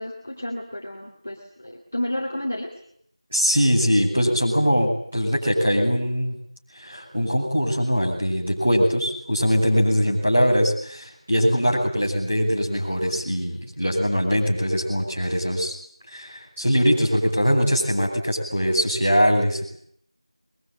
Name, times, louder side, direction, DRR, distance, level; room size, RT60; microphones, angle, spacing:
voice 1, 0.0-2.7, left 1 dB, 20° left, -3 dB, 2.4 m, -31 dB
voice 2, 3.3-6.3 6.7-15.7 16.1-19.7, equal, 10° right, -10 dB, 6.0 m, -22 dB
23.0 x 22.5 x 9.3 m, 0.65 s
figure-of-eight pair, 175°, 3 cm